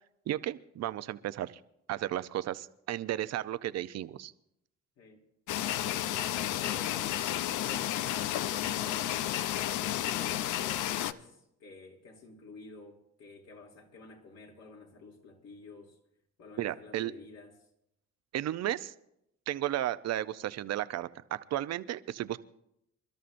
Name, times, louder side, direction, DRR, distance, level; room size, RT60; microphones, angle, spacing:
voice 1, 0.3-1.6 1.9-4.3 16.6-17.1 18.3-18.9 19.5-22.4, right 13 dB, 60° right, 14 dB, 0.7 m, -34 dB
sound 1, 5.5-11.1, left 13 dB, 85° left, 0.6 m, -32 dB
voice 2, 5.8-16.0 16.4-17.6, left 3 dB, 60° left, 1 dB, 2.9 m, -51 dB
27.5 x 13.0 x 2.6 m, 0.78 s
cardioid pair, 95°, 29 cm